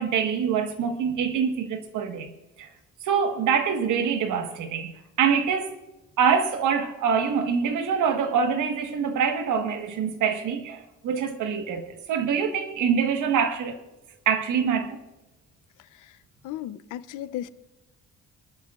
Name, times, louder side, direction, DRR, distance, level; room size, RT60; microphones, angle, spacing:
voice 1, 0.0-2.3 2.6-2.7 3.0-5.8 6.2-13.8 14.2-15.0, right 7 dB, 80° right, 1.6 m, -25 dB
voice 2, 16.4-17.5, left 12 dB, 85° left, 0.7 m, -35 dB
23.5 x 12.0 x 2.5 m
cardioid pair, 90°, 30 cm